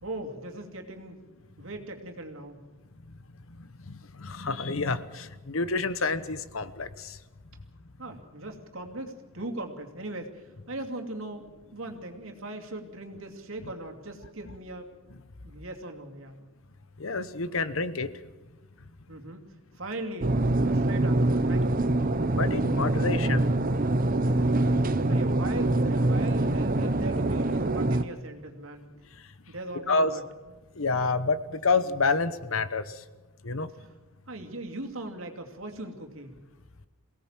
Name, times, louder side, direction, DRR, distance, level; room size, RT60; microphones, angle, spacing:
voice 1, 0.0-1.2 1.6-2.6 8.0-14.9 15.4-16.4 19.1-19.4 19.7-20.3 20.7-21.8 25.1-28.9 29.5-30.2 33.8-33.9 34.3-36.3, right 2 dB, 70° right, 4 dB, 2.6 m, -39 dB
voice 2, 3.9-7.2 17.0-18.1 22.4-23.5 29.9-30.1 30.8-32.8 33.4-33.7, left 3 dB, 70° left, 14 dB, 1.0 m, -28 dB
sound 1, 20.2-28.0, right 2 dB, 40° right, 0.8 m, -24 dB
23.5 x 17.5 x 7.4 m, 1.2 s
head